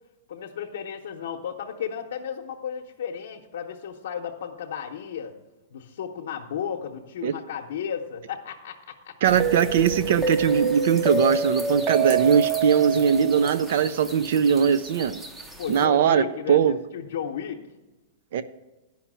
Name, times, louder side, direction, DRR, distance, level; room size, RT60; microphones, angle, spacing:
voice 1, 0.3-5.3 5.7-9.1 15.6-17.6, left 8 dB, 75° left, 0 dB, 0.8 m, -34 dB
sound 1, 9.2-15.8, right 5 dB, 10° right, 0.6 m, -28 dB
voice 2, 9.2-15.2 15.7-16.8 18.3-18.4, right 7 dB, 60° right, 14 dB, 0.4 m, -21 dB
10.0 x 5.7 x 7.4 m, 1.1 s
supercardioid pair, 160°, 0 cm